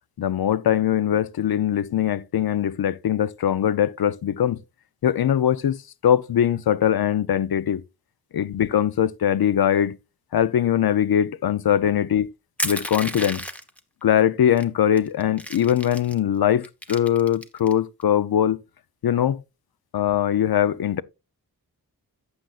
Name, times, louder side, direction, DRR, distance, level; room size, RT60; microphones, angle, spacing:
voice 1, 0.2-4.6 5.0-5.8 6.0-7.8 8.3-10.0 10.3-12.3 12.6-13.4 14.0-18.6 19.0-19.4 19.9-21.0, left 10 dB, 70° left, 0.6 m, -21 dB
Crushing, 12.6-13.8 14.6-14.7 15.0-16.2 16.6-17.7, equal, 5° left, 0.9 m, -32 dB
11.5 x 7.9 x 2.4 m
wide cardioid pair, 120°, 38 cm